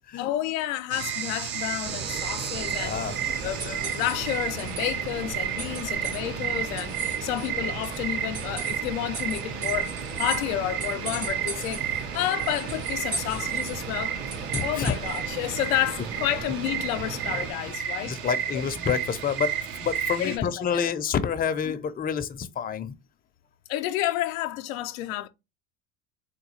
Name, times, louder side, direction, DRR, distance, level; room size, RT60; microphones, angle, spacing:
voice 1, 0.2-3.0 3.4-9.9 10.2-14.2 14.6-18.1 18.5-18.6 20.2-20.9 23.7-25.3, left 13 dB, 85° left, 0.5 m, -30 dB
sound 1, 0.9-20.4, right 9 dB, 60° right, 0.8 m, -32 dB
sound 2, 1.8-17.5, right 4 dB, 30° right, 0.7 m, -38 dB
voice 2, 2.6-3.1 14.5-15.0 18.0-19.5 19.8-22.9, left 7 dB, 25° left, 0.5 m, -28 dB
sound 3, 2.6-15.4, right 3 dB, 80° right, 2.3 m, -40 dB
3.7 x 2.3 x 3.1 m
supercardioid pair, 95°, 39 cm